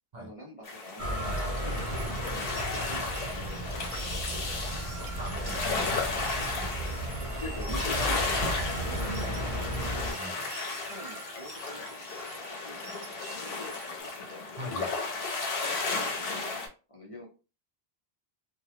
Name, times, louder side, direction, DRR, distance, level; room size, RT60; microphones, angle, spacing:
voice 1, 0.1-4.0 4.3-4.5 5.0-5.1 7.3-7.9 8.8-9.9 10.9-11.8 12.4-14.4 15.6-17.3, equal, 40° left, -2 dB, 0.6 m, -45 dB
sound 1, 0.6-16.7, left 3 dB, 65° left, 1.0 m, -34 dB
sound 2, 1.0-10.1, right 1 dB, 20° left, 1.0 m, -34 dB
sound 3, 1.4-14.0, right 4 dB, 90° right, 0.8 m, -47 dB
voice 2, 5.2-6.7 7.0-7.3 7.9-8.1 10.1-10.5 14.6-15.0, equal, 45° right, 0 dB, 0.7 m, -41 dB
3.3 x 2.1 x 2.8 m, 0.33 s
omnidirectional pair, 1.1 m